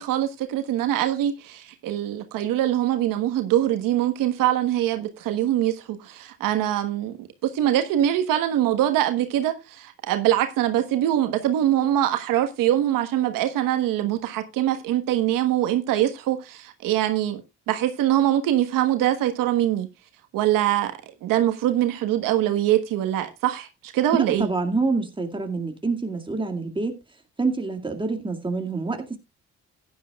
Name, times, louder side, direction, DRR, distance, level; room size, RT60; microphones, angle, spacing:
voice 1, 0.0-17.4 17.7-19.9 20.3-20.9 21.2-24.5, right 12 dB, 85° right, 1.4 m, -23 dB
voice 2, 24.1-27.0 27.4-29.2, right 3 dB, 15° right, 2.1 m, -27 dB
15.0 x 10.5 x 2.4 m
cardioid pair, 80°, 32 cm